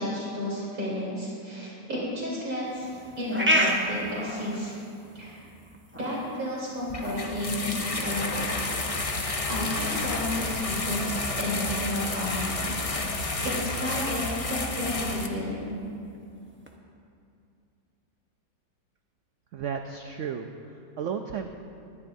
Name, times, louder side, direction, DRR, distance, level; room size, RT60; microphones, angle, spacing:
voice 1, 0.0-2.9 3.2-4.7 5.1-5.4 5.9-8.8 9.0-14.2 14.5-15.8, left 1 dB, 50° right, -7 dB, 4.1 m, -32 dB
sound 1, 2.7-16.7, equal, 10° right, 0.7 m, -35 dB
sound 2, 6.9-15.3, left 2 dB, 65° left, 0.3 m, -30 dB
voice 2, 19.5-21.5, right 7 dB, 85° right, 5 dB, 0.6 m, -34 dB
21.5 x 11.0 x 2.7 m, 2.4 s
omnidirectional pair, 1.9 m